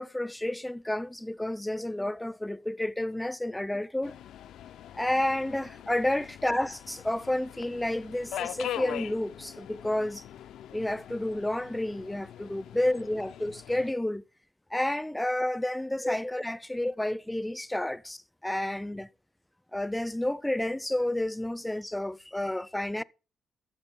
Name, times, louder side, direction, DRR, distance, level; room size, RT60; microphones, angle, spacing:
voice 1, 0.0-4.1 4.9-10.2 10.7-14.2 14.7-19.1 19.7-23.0, left 1 dB, 10° left, 0.4 m, -30 dB
Subway metro underground, 4.0-13.9, left 11 dB, 85° left, 0.4 m, -42 dB
13.5 x 6.7 x 5.5 m
cardioid pair, 95°, 0 cm